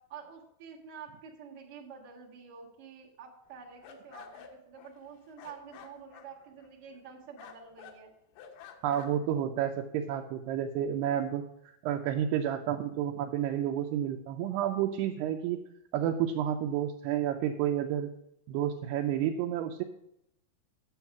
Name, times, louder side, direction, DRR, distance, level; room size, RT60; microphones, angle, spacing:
voice 1, 0.1-8.1, right 6 dB, 55° right, -5 dB, 1.1 m, -48 dB
sound 1, 3.5-7.1 7.4-8.0 8.3-9.3, left 7 dB, 80° left, 2.9 m, -51 dB
voice 2, 8.8-11.4 11.8-15.6 15.9-18.1 18.5-19.8, right 10 dB, 90° right, 3 dB, 2.6 m, -30 dB
9.2 x 7.2 x 5.8 m, 0.79 s
omnidirectional pair, 4.6 m